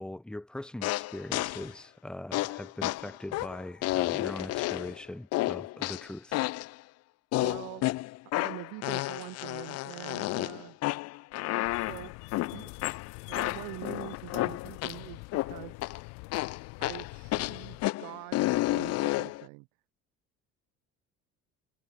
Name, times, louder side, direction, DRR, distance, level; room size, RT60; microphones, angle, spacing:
voice 1, 0.0-6.4, left 1 dB, 5° left, 0.8 m, -41 dB
sound 1, 0.8-1.7 2.3-5.0 5.3-6.7 7.3-15.0 15.3-16.0 16.3-19.4, left 18 dB, 50° left, 0.6 m, -31 dB
voice 2, 7.4-7.9 8.4-10.8 11.6-12.1 12.5-12.7 13.3-15.9 16.8-19.7, right 31 dB, 85° right, 0.7 m, -44 dB
sound 2, 11.6-17.9, left 30 dB, 90° left, 3.1 m, -45 dB
cardioid pair, 140°, 32 cm